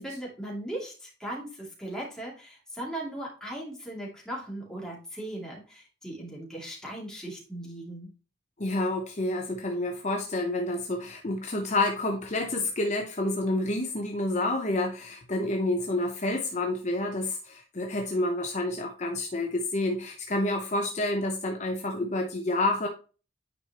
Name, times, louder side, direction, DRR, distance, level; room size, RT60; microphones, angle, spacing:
voice 1, 0.0-8.1, right 1 dB, 5° left, -4 dB, 2.7 m, -38 dB
voice 2, 8.6-22.9, left 2 dB, 40° left, 2 dB, 0.9 m, -29 dB
9.7 x 5.0 x 3.0 m, 0.34 s
head